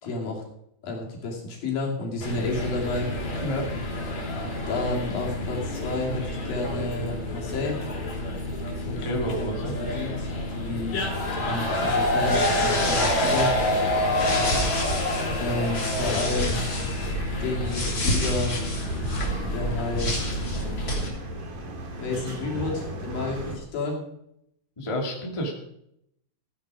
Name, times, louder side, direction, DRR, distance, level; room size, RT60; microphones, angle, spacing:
voice 1, 0.0-0.4 0.8-3.1 4.7-7.8 8.9-9.5 9.8-11.1 11.3-13.5 15.4-16.6 17.4-18.6 19.5-20.2 22.0-24.0, left 2 dB, 75° left, -1 dB, 4.5 m, -30 dB
sound 1, 2.2-21.1, left 1 dB, 50° left, 4.6 m, -28 dB
voice 2, 8.9-9.7 24.8-25.5, equal, 10° left, 0 dB, 1.9 m, -30 dB
sound 2, 11.7-21.1, equal, 25° left, 3.0 m, -30 dB
sound 3, 14.1-23.6, equal, 65° right, 4.2 m, -37 dB
15.5 x 9.6 x 4.9 m, 0.77 s
omnidirectional pair, 4.2 m